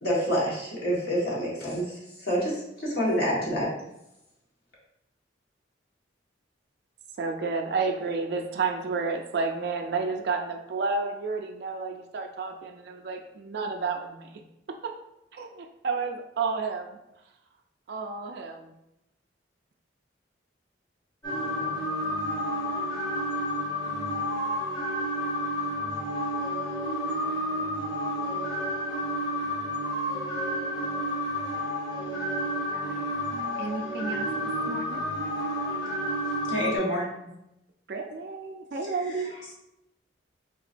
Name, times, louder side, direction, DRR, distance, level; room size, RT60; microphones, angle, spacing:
voice 1, 0.0-3.7, equal, 60° left, -6 dB, 1.4 m, -27 dB
voice 2, 7.2-14.4 14.8-14.9 15.3-17.0 17.9-18.8 32.4-33.1 33.6-34.3 34.7-35.0 37.9-39.3, right 4 dB, 60° right, 3 dB, 0.3 m, -31 dB
sound 1, 21.2-36.8, equal, 25° left, 0.9 m, -30 dB
voice 3, 35.3-35.8 36.4-37.3 39.1-39.2, equal, 85° left, -5 dB, 1.3 m, -31 dB
3.8 x 2.9 x 2.5 m, 0.86 s
head